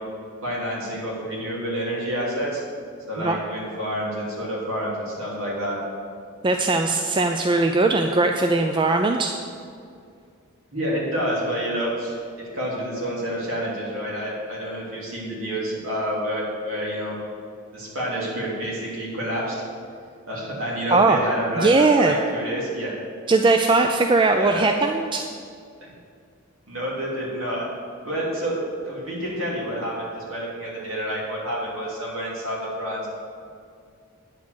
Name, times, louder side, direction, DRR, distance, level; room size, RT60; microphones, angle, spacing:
voice 1, 0.4-2.6 3.1-5.8 10.7-17.1 17.7-19.6 20.3-23.0 24.3-24.7 25.8-25.9 26.7-27.7 28.0-28.6 28.8-33.1, equal, 65° right, -5 dB, 3.0 m, -28 dB
voice 2, 6.4-9.4 20.9-21.2 21.6-22.2 23.3-25.3, right 3 dB, 20° right, 4 dB, 0.3 m, -19 dB
9.5 x 5.2 x 8.1 m, 2.3 s
head